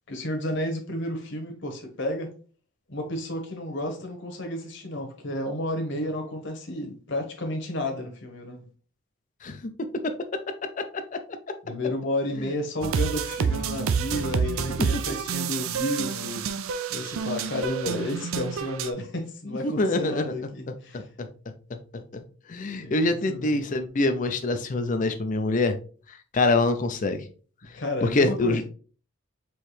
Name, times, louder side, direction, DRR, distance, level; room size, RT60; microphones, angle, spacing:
voice 1, 0.1-2.3 2.9-8.6 11.6-16.4 16.9-21.0 22.8-23.6 27.7-28.6, left 1 dB, 55° left, 1.1 m, -32 dB
voice 2, 9.4-10.2 10.8-11.2 12.4-12.5 14.8-14.9 19.5-20.3 20.9-21.3 21.7-22.2 22.5-25.8 26.1-27.3 28.0-28.6, left 2 dB, 35° left, 0.4 m, -26 dB
sound 1, 12.8-18.9, right 6 dB, 70° right, 0.4 m, -28 dB
4.6 x 3.1 x 3.2 m
head